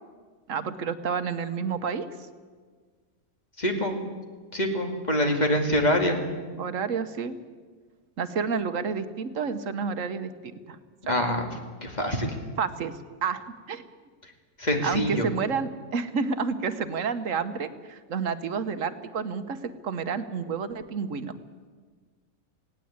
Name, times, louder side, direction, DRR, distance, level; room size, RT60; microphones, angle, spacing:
voice 1, 0.5-2.1 6.6-7.3 8.2-10.3 10.7-10.8 12.6-12.9 13.2-13.8 14.8-21.3, right 5 dB, 75° right, 11 dB, 1.4 m, -30 dB
voice 2, 3.6-4.0 4.5-6.2 11.1-11.4 11.8-12.4 14.6-15.3, equal, 30° left, 3 dB, 2.6 m, -25 dB
19.0 x 17.0 x 8.8 m, 1.5 s
omnidirectional pair, 1.4 m